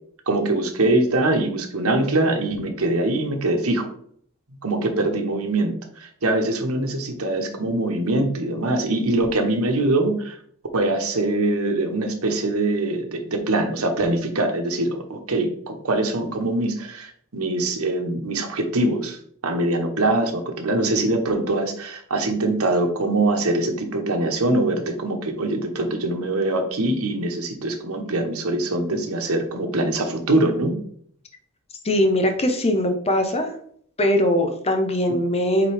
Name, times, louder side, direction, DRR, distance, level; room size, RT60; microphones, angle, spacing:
voice 1, 0.3-3.9 4.6-10.4 10.7-19.2 19.4-30.8, right 2 dB, 90° right, 4 dB, 1.2 m, -23 dB
voice 2, 31.8-33.5 34.0-35.7, left 1 dB, 30° left, 5 dB, 1.0 m, -21 dB
8.2 x 3.7 x 3.5 m, 0.63 s
head